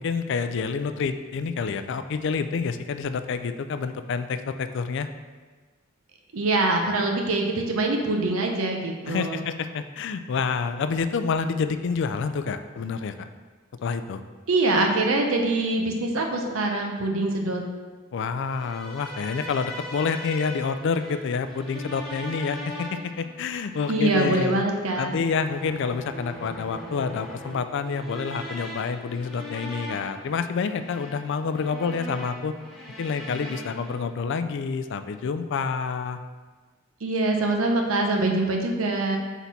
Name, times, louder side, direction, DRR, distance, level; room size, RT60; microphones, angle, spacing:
voice 1, 0.0-5.1 9.1-13.3 13.8-14.2 18.1-24.6 25.0-32.5 33.0-36.2, left 5 dB, 60° left, 10 dB, 0.4 m, -28 dB
voice 2, 6.3-9.4 14.5-17.6 23.9-25.1 37.0-39.2, right 2 dB, 75° right, 2 dB, 0.8 m, -24 dB
sound 1, 18.4-34.0, equal, ahead, 1.6 m, -40 dB
6.2 x 4.0 x 4.1 m, 1.4 s
head